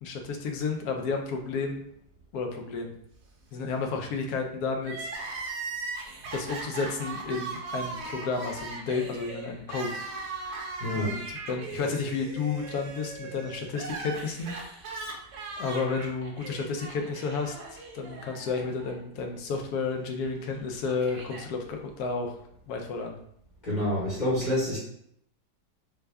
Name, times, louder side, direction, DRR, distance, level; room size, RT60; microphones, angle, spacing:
voice 1, 0.0-1.8 2.3-2.9 3.5-5.1 6.3-10.1 10.9-11.2 11.5-14.5 14.9-15.0 15.6-22.4 22.7-23.1, left 4 dB, 70° left, 3 dB, 1.1 m, -32 dB
Crying sobbing, 4.8-19.0 19.2-19.3 20.3-21.5, right 3 dB, 60° right, 0.7 m, -39 dB
voice 2, 10.8-11.2 23.6-24.8, left 1 dB, 30° left, -8 dB, 1.0 m, -27 dB
3.4 x 2.3 x 3.3 m, 0.70 s
omnidirectional pair, 1.8 m